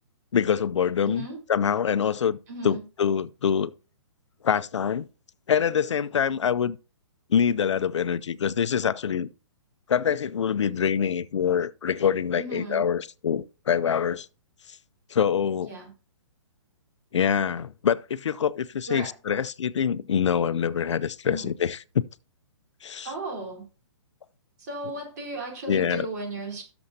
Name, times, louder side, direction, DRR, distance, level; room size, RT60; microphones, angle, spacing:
voice 1, 0.3-2.4 2.6-3.7 4.4-5.1 5.5-6.8 7.3-9.3 9.9-14.3 15.1-15.7 17.1-22.0 22.8-23.1 25.7-26.1, left 7 dB, 75° left, 0.6 m, -25 dB
voice 2, 1.0-1.4 2.5-2.8 12.4-12.8 15.6-15.9 18.9-19.2 21.2-21.5 23.0-23.7 24.6-26.6, right 2 dB, 35° right, 4.0 m, -35 dB
16.5 x 7.0 x 2.8 m
hypercardioid pair, 170°, 15 cm